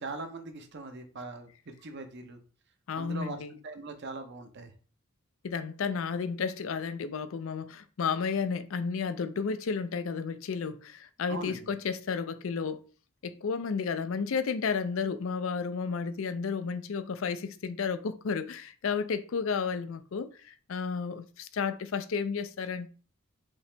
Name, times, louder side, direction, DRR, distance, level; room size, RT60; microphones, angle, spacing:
voice 1, 0.0-2.4 3.0-3.4 3.6-4.7 11.3-11.7, right 3 dB, 55° right, 0.7 m, -41 dB
voice 2, 2.9-3.6 5.4-12.8 13.2-22.9, left 5 dB, 70° left, 0.4 m, -32 dB
5.2 x 2.9 x 3.3 m
head